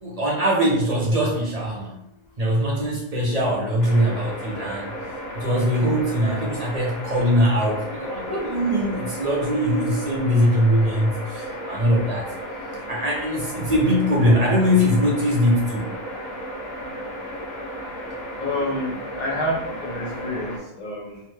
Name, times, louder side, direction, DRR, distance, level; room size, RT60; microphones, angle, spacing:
voice 1, 0.0-2.0 2.4-4.9 5.3-12.3 12.9-15.9, equal, 45° right, -3 dB, 0.6 m, -21 dB
sound 1, 3.8-20.6, equal, 80° left, 1.0 m, -34 dB
voice 2, 18.4-21.2, left 1 dB, 55° left, -3 dB, 0.5 m, -28 dB
2.8 x 2.1 x 3.1 m, 0.80 s
omnidirectional pair, 1.0 m